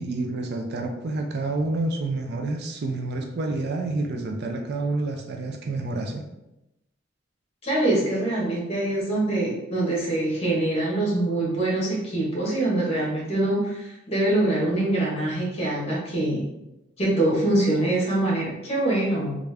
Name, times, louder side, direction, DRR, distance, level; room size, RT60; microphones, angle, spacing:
voice 1, 0.0-6.2, right 2 dB, 60° right, 4 dB, 0.4 m, -28 dB
voice 2, 7.6-16.5 17.0-19.4, right 1 dB, 30° left, -4 dB, 1.2 m, -24 dB
3.3 x 2.5 x 3.3 m, 0.93 s
head